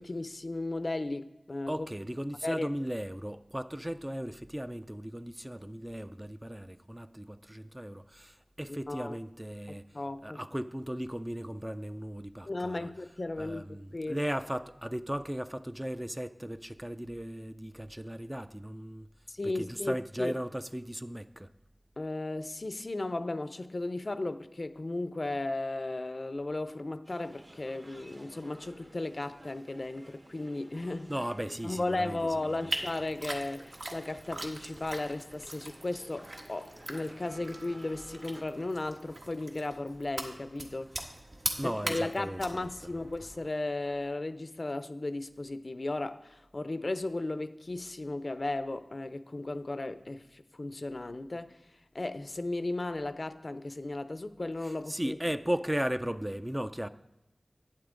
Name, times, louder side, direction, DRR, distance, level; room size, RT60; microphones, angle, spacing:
voice 1, 0.0-1.9 2.4-2.7 8.7-9.2 9.9-10.4 12.5-14.2 19.3-20.4 22.0-31.1 31.6-40.9 41.6-51.6 51.9-55.2, left 2 dB, 55° left, 0.5 m, -35 dB
voice 2, 1.7-12.9 13.4-19.1 19.4-21.5 31.1-32.8 41.6-43.1 54.6-56.9, equal, 15° right, 0.4 m, -36 dB
sound 1, 27.0-38.4, right 1 dB, 45° right, 1.1 m, -53 dB
sound 2, 32.7-43.5, right 1 dB, 65° right, 1.4 m, -41 dB
sound 3, 36.7-45.4, right 1 dB, 90° right, 1.7 m, -60 dB
11.0 x 8.7 x 3.8 m
wide cardioid pair, 55°, 0 cm